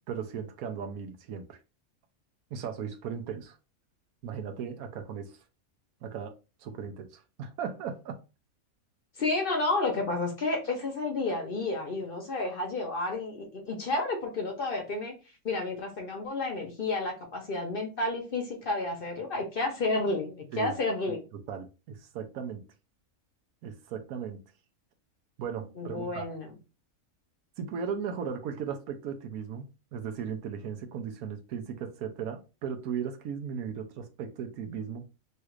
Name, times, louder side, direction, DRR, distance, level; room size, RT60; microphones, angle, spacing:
voice 1, 0.1-1.6 2.5-3.6 4.2-5.4 6.0-8.2 20.5-20.8 21.1-22.6 23.6-24.4 25.4-26.4 27.6-35.1, right 7 dB, 90° right, 1.1 m, -37 dB
voice 2, 9.2-15.1 15.4-21.2 25.8-26.5, left 2 dB, 50° left, 0.8 m, -31 dB
3.2 x 2.4 x 3.0 m
omnidirectional pair, 1.5 m